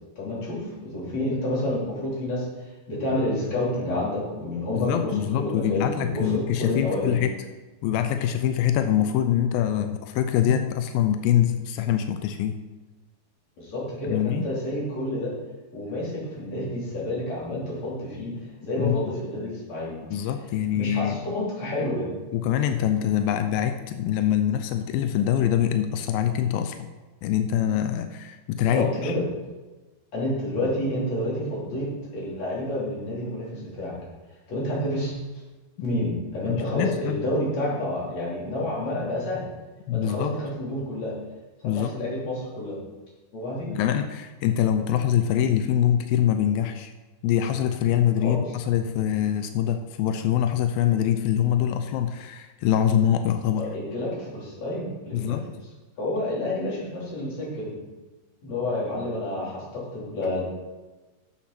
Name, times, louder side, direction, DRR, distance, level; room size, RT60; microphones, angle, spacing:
voice 1, 0.2-2.5 2.9-7.2 13.6-15.3 15.7-19.9 20.7-22.1 28.6-29.3 30.1-31.9 32.1-34.0 34.5-35.1 35.8-39.5 39.9-41.2 41.8-42.8 43.3-43.7 48.2-48.4 53.6-55.4 56.0-57.7 58.4-60.4, left 1 dB, 45° left, -6 dB, 4.2 m, -29 dB
voice 2, 4.7-7.3 7.8-12.6 14.0-14.5 18.8-19.0 20.1-21.2 22.3-26.9 27.2-29.1 36.5-37.2 39.9-40.4 41.6-41.9 43.7-46.9 47.2-53.7 55.1-55.5, left 10 dB, 85° left, 8 dB, 2.1 m, -24 dB
9.8 x 7.2 x 5.9 m, 1.2 s
omnidirectional pair, 4.8 m